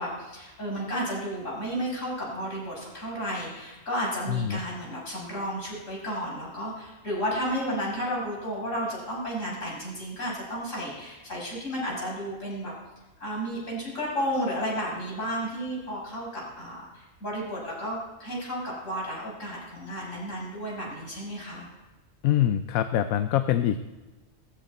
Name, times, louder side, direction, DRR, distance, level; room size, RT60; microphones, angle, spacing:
voice 1, 0.0-12.7 13.2-21.6, equal, 65° left, -5 dB, 7.0 m, -32 dB
voice 2, 4.3-4.6 22.2-23.8, left 11 dB, 85° left, 10 dB, 1.1 m, -24 dB
20.0 x 14.5 x 4.1 m, 1.2 s
omnidirectional pair, 1.4 m